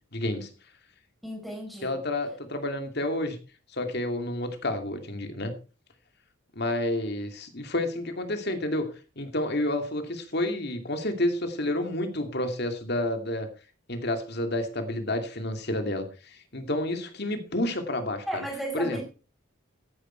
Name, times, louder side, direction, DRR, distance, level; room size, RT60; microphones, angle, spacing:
voice 1, 0.1-0.5 1.8-3.4 3.7-5.5 6.6-8.9 9.2-13.5 13.9-18.4 18.7-19.0, left 1 dB, 50° left, 6 dB, 2.5 m, -30 dB
voice 2, 1.2-1.9 18.3-19.0, right 1 dB, ahead, 2 dB, 4.5 m, -34 dB
14.0 x 10.0 x 4.5 m, 0.35 s
head